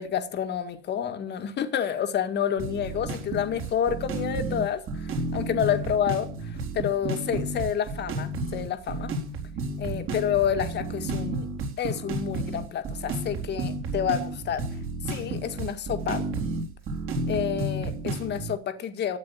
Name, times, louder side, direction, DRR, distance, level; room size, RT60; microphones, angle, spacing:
voice 1, 0.0-9.1 9.8-11.5 11.8-14.7 15.1-16.3 17.3-19.2, left 9 dB, 35° left, 1.9 m, -29 dB
sound 1, 2.6-18.5, right 2 dB, 40° right, 4.2 m, -32 dB
13.0 x 9.4 x 7.3 m
figure-of-eight pair, 80°, 32 cm